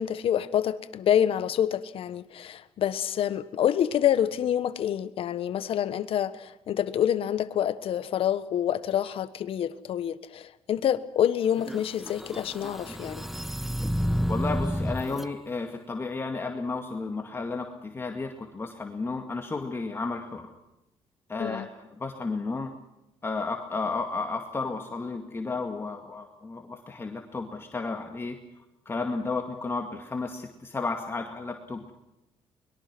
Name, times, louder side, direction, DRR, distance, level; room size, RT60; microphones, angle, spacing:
voice 1, 0.0-13.3 21.4-21.7, left 10 dB, 65° left, 1.3 m, -27 dB
sound 1, 11.5-15.3, equal, ahead, 1.1 m, -30 dB
voice 2, 14.3-20.5 21.3-22.7 23.2-28.4 28.9-31.9, left 3 dB, 25° left, 2.1 m, -33 dB
24.0 x 22.0 x 6.1 m
cardioid pair, 125°, 10 cm